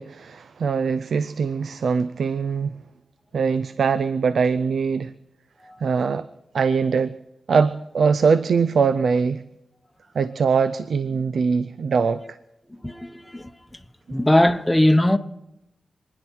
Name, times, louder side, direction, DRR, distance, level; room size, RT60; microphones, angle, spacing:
voice 1, 0.0-2.8 3.3-5.1 5.8-6.3 6.5-7.2 7.5-9.4 10.1-12.4, right 5 dB, 75° right, 0.4 m, -22 dB
voice 2, 12.7-13.5 14.1-15.2, left 1 dB, 10° left, 0.8 m, -20 dB
27.0 x 10.5 x 4.5 m
wide cardioid pair, 90°, 0 cm